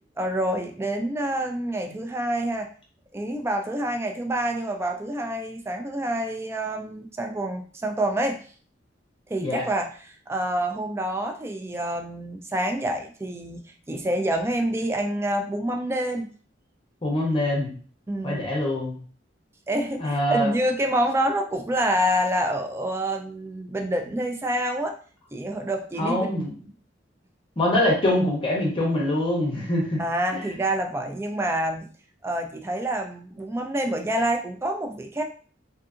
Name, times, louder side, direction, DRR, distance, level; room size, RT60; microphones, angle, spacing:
voice 1, 0.2-2.7 3.1-8.4 9.3-13.6 13.9-16.3 18.1-18.4 19.7-25.0 25.3-26.4 30.0-31.9 32.2-35.2, right 1 dB, 15° right, 4 dB, 0.3 m, -27 dB
voice 2, 17.0-17.7 18.2-19.0 20.0-20.5 26.0-26.5 27.6-30.0, left 1 dB, 30° left, -2 dB, 0.6 m, -24 dB
2.7 x 2.5 x 2.4 m, 0.41 s
head